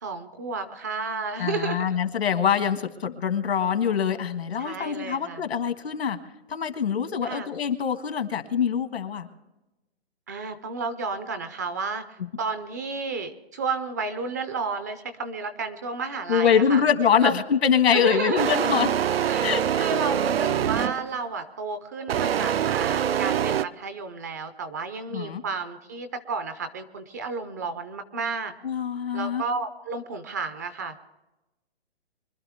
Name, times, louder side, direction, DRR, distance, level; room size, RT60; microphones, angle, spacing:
voice 1, 0.0-2.0 4.6-5.4 7.2-7.5 10.3-12.0 12.4-16.8 17.2-17.4 17.9-18.6 19.3-19.5 19.8-28.5 29.1-31.0, right 4 dB, 15° right, 10 dB, 0.5 m, -32 dB
voice 2, 1.4-6.2 6.5-9.3 16.3-18.9 19.4-19.9 25.1-25.4 28.6-29.4, left 7 dB, 80° left, 8 dB, 1.8 m, -24 dB
sound 1, 18.4-21.2 22.1-23.6, right 9 dB, 70° right, 0.6 m, -24 dB
24.5 x 12.0 x 3.5 m, 1.0 s
hypercardioid pair, 160°, 31 cm